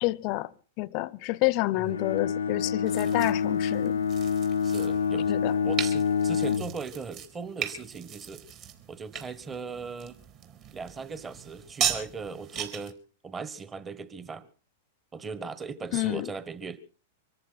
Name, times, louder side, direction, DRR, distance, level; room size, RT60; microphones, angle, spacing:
voice 1, 0.0-0.5 0.8-4.0 5.3-5.5 6.5-6.6 15.9-16.3, left 20 dB, 50° left, 0.7 m, -28 dB
Bowed string instrument, 1.9-6.8, left 6 dB, 90° left, 0.7 m, -27 dB
sound 1, 2.9-12.9, right 8 dB, 45° right, 3.8 m, -37 dB
voice 2, 4.6-5.3 5.6-8.5 8.9-10.2 10.7-13.0 13.2-14.5 15.1-16.8, right 5 dB, 20° right, 1.5 m, -38 dB
24.0 x 14.0 x 4.1 m
hypercardioid pair, 110°, 0 cm